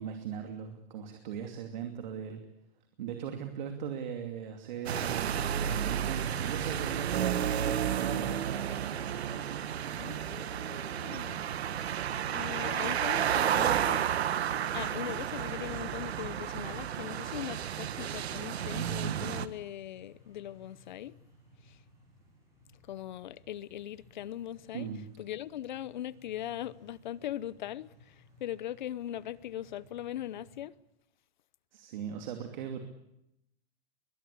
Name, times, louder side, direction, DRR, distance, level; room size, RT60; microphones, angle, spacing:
voice 1, 0.0-2.4 3.0-8.8 24.7-25.1 31.7-32.8, right 7 dB, 45° right, 2.7 m, -39 dB
sound 1, 4.9-19.5, right 9 dB, 90° right, 1.7 m, -32 dB
voice 2, 10.0-11.4 12.3-14.0 14.7-21.1 21.6-21.8 22.9-24.9 25.2-30.7, left 12 dB, 50° left, 0.8 m, -40 dB
sound 2, 17.0-30.6, left 1 dB, 10° right, 6.8 m, -60 dB
22.5 x 22.0 x 8.4 m
supercardioid pair, 175°, 31 cm